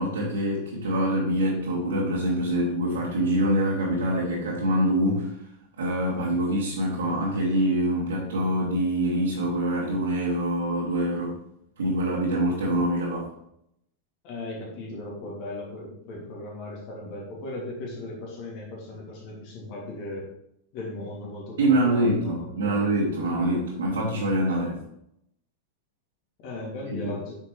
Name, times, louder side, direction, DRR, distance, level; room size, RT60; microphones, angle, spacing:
voice 1, 0.0-5.4 5.8-11.4 11.8-13.3 21.6-24.8 26.9-27.1, right 1 dB, 70° right, -7 dB, 2.2 m, -25 dB
voice 2, 14.2-20.3 20.7-22.8 26.4-27.4, left 2 dB, 45° left, -3 dB, 2.8 m, -37 dB
9.1 x 6.5 x 3.4 m, 0.74 s
figure-of-eight pair, 90°, 0 cm